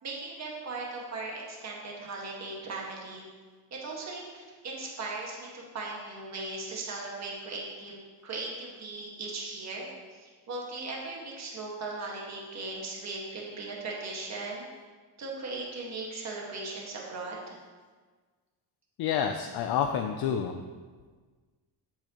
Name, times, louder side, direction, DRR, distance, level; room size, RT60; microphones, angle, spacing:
voice 1, 0.0-3.3 3.7-7.9 8.2-14.7 15.2-17.6, right 3 dB, 40° right, -2 dB, 1.7 m, -38 dB
voice 2, 19.0-20.6, left 8 dB, 60° left, 5 dB, 0.6 m, -29 dB
8.6 x 8.0 x 3.0 m, 1.5 s
cardioid pair, 130°, 42 cm